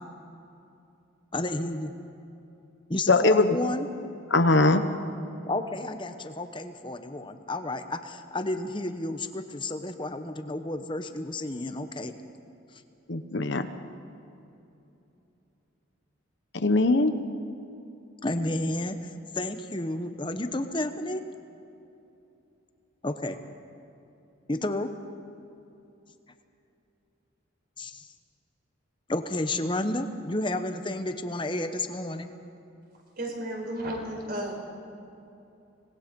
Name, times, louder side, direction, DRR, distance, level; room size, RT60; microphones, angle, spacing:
voice 1, 1.3-1.9 2.9-3.9 5.5-12.1 18.2-21.2 23.0-23.4 24.5-24.9 27.8-28.1 29.1-32.3, left 1 dB, 25° left, 8 dB, 1.0 m, -31 dB
voice 2, 3.1-3.6 4.3-4.9 13.1-13.7 16.5-17.2, left 2 dB, 55° left, 9 dB, 1.1 m, -21 dB
voice 3, 33.2-34.5, right 1 dB, 45° right, 0 dB, 4.6 m, -33 dB
26.0 x 19.5 x 5.3 m, 2.8 s
head